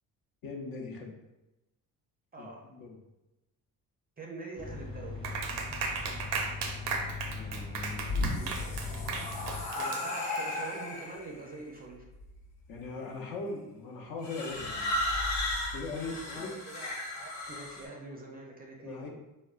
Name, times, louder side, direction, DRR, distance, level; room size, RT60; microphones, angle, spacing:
voice 1, 0.4-1.2 2.4-3.0 7.3-8.1 12.7-15.0 15.7-16.5 18.8-19.1, left 3 dB, 65° left, 0 dB, 0.7 m, -40 dB
voice 2, 2.3-2.6 4.2-5.3 9.8-12.0 15.9-19.1, right 2 dB, 25° right, -1 dB, 0.4 m, -44 dB
sound 1, 4.6-9.6, left 4 dB, 15° left, 0.8 m, -40 dB
Clapping, 5.2-10.5, right 4 dB, 90° right, 0.5 m, -35 dB
sound 2, 8.0-11.3 12.2-12.6 14.2-17.8, left 1 dB, 85° left, 1.0 m, -34 dB
3.5 x 2.1 x 2.3 m, 0.98 s
cardioid pair, 105°, 38 cm